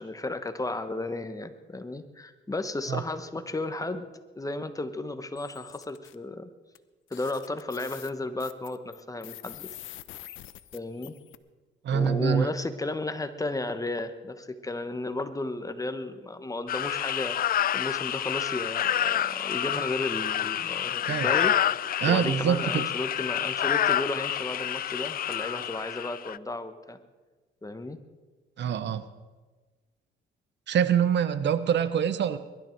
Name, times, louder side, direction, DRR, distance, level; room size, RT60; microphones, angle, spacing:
voice 1, 0.0-4.1 4.4-6.5 7.1-9.7 10.7-11.1 11.9-21.5 22.1-27.0 27.6-28.0, left 2 dB, 15° left, 9 dB, 1.2 m, -34 dB
sound 1, 5.4-6.1 6.7-6.8 7.1-11.4, left 14 dB, 80° left, 0.7 m, -46 dB
voice 2, 11.8-12.5 21.1-21.3 22.0-22.9 28.6-29.1 30.7-32.4, right 8 dB, 65° right, 13 dB, 0.9 m, -25 dB
sound 2, 16.7-26.4, left 11 dB, 50° left, 0.4 m, -28 dB
22.5 x 12.0 x 4.6 m, 1.3 s
cardioid pair, 90°, 20 cm